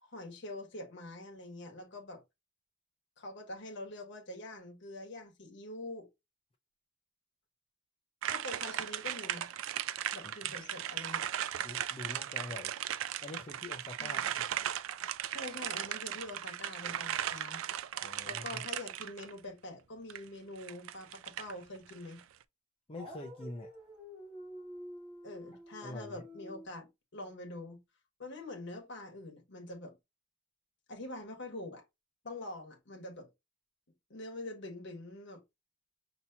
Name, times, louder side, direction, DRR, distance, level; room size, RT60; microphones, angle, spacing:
voice 1, 0.0-2.2 3.2-6.1 8.3-9.5 10.1-11.3 14.0-14.2 15.3-17.6 18.2-22.2 25.2-27.8 28.2-30.0 30.9-31.8 32.2-33.3 34.1-35.4, left 2 dB, 60° left, 1.2 m, -45 dB
sound 1, 8.2-19.3 20.1-20.2 20.6-21.9 22.2-22.3, right 10 dB, 70° right, 0.4 m, -37 dB
voice 2, 10.2-10.6 11.6-12.7 13.2-14.5 18.0-18.6 22.9-23.7 25.8-26.3, left 2 dB, 25° left, 0.6 m, -45 dB
Dog, 23.0-26.7, equal, 5° right, 1.6 m, -48 dB
5.7 x 2.9 x 2.7 m
head